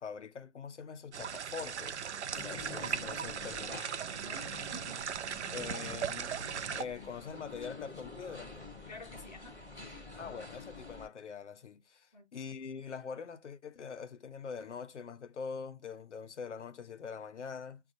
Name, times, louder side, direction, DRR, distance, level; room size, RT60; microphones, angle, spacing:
voice 1, 0.0-2.0 2.3-3.9 5.5-6.5 6.7-8.6 10.2-17.8, left 6 dB, 85° left, 0.7 m, -44 dB
sound 1, 1.1-6.8, right 7 dB, 80° right, 0.5 m, -38 dB
sound 2, 2.3-11.1, left 3 dB, ahead, 0.7 m, -48 dB
voice 2, 4.2-5.1 8.9-10.1 12.1-12.3, left 1 dB, 40° left, 0.7 m, -51 dB
5.1 x 2.3 x 2.6 m
hypercardioid pair, 180°, 34 cm